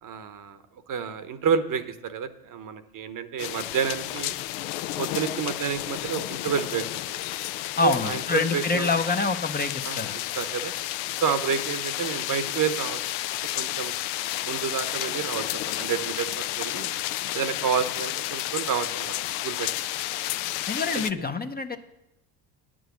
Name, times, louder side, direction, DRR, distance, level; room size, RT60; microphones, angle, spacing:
voice 1, 0.0-4.3 5.0-7.1 7.8-8.9 9.9-10.7 11.2-13.0 13.6-13.9 14.4-16.9 17.3-19.1 19.4-19.7, right 7 dB, 45° right, 11 dB, 0.9 m, -29 dB
sound 1, 3.4-21.1, left 15 dB, 75° left, 0.6 m, -31 dB
voice 2, 7.8-10.2 20.7-21.8, left 4 dB, 20° left, 7 dB, 0.7 m, -26 dB
9.4 x 6.2 x 8.2 m, 0.92 s
supercardioid pair, 80°, 44 cm